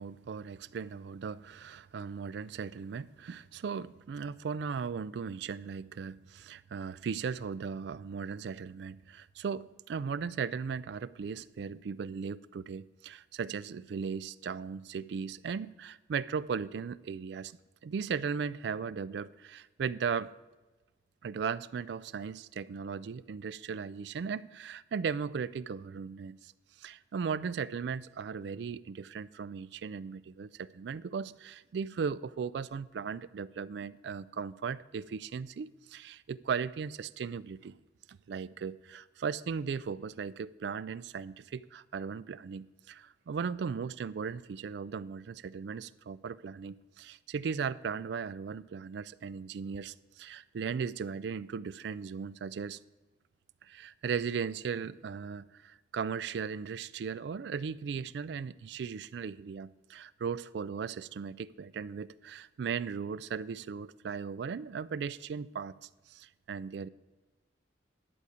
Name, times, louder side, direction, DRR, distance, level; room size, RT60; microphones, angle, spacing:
voice 1, 0.0-20.3 21.2-26.5 26.8-37.8 38.1-52.8 53.6-65.8 66.1-66.9, right 6 dB, 65° right, 0.3 m, -37 dB
11.0 x 8.2 x 5.0 m
head